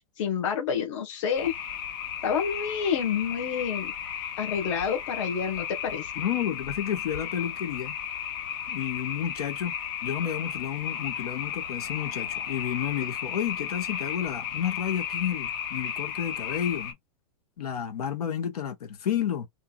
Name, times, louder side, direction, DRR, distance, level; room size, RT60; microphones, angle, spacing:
voice 1, 0.2-1.5 2.2-3.9 4.4-6.1, left 7 dB, 55° left, 1.5 m, -28 dB
sound 1, 1.3-16.9, left 8 dB, 40° left, 0.7 m, -34 dB
voice 2, 6.2-7.9 8.7-9.7 10.0-17.0 17.6-19.5, left 9 dB, 80° left, 1.4 m, -31 dB
3.2 x 2.8 x 2.4 m
supercardioid pair, 170°, 19 cm